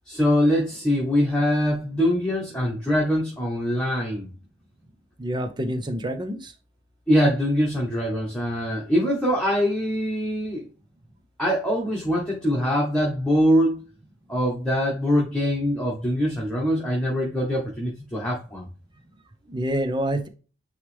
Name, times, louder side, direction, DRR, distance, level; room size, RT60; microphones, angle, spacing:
voice 1, 0.0-4.3 7.1-10.7 11.4-13.8 14.3-18.7, equal, 5° left, -4 dB, 1.5 m, -23 dB
voice 2, 5.2-6.5 19.5-20.3, right 1 dB, 25° right, 7 dB, 0.9 m, -27 dB
9.4 x 3.3 x 3.5 m, 0.35 s
head